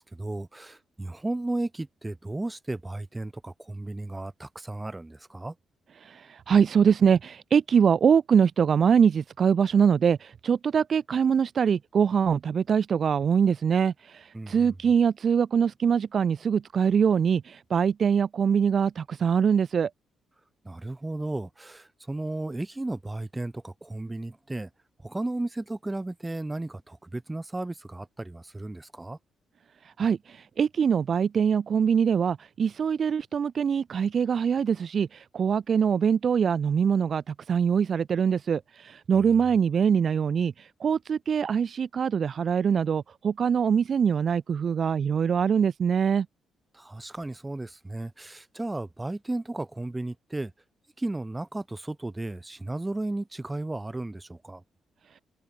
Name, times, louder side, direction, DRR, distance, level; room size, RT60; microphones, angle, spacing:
voice 1, 0.0-5.6 14.3-14.7 20.6-24.7 25.0-29.2 46.7-50.5 51.0-54.6, right 2 dB, 15° right, 3.5 m, -34 dB
voice 2, 6.0-19.9 29.8-46.3, right 7 dB, 55° right, 0.5 m, -23 dB
supercardioid pair, 65°, 0 cm